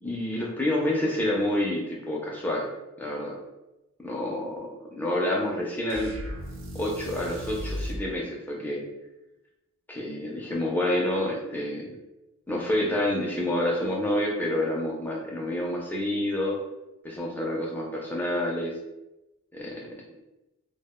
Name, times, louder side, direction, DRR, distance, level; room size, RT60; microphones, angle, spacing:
voice 1, 0.0-2.7 3.0-3.4 4.0-6.1 6.7-8.8 9.9-12.0 12.5-16.6 17.0-18.7 19.5-19.9, left 1 dB, 10° left, -3 dB, 0.4 m, -28 dB
sound 1, 5.9-8.1, equal, 60° right, 0.5 m, -35 dB
2.3 x 2.1 x 3.5 m, 0.99 s
head